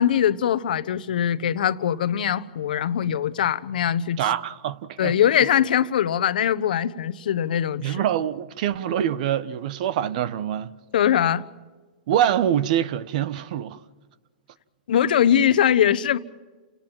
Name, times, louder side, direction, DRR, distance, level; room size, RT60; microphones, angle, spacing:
voice 1, 0.0-4.2 5.0-8.0 10.9-11.4 14.9-16.2, left 9 dB, 75° left, 1.1 m, -21 dB
voice 2, 4.2-5.2 7.8-10.8 12.1-13.8, right 10 dB, 60° right, 1.2 m, -25 dB
29.5 x 18.5 x 7.4 m
hypercardioid pair, 125°, 5 cm